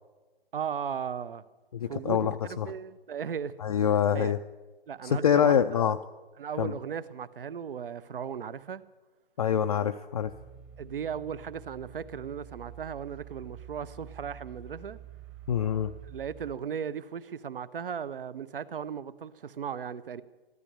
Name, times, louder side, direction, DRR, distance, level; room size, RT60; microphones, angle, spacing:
voice 1, 0.5-1.4 1.9-3.5 3.8-4.3 4.9-5.9 6.4-8.8 10.8-15.0 16.0-20.2, right 7 dB, 60° right, 0.8 m, -37 dB
voice 2, 1.7-2.7 3.6-4.4 5.0-6.0 6.6-6.8 9.4-10.3 15.5-15.9, left 8 dB, 40° left, 0.4 m, -25 dB
sound 1, 10.2-16.5, right 8 dB, 25° right, 1.2 m, -48 dB
14.0 x 12.5 x 6.7 m
figure-of-eight pair, 135°, 31 cm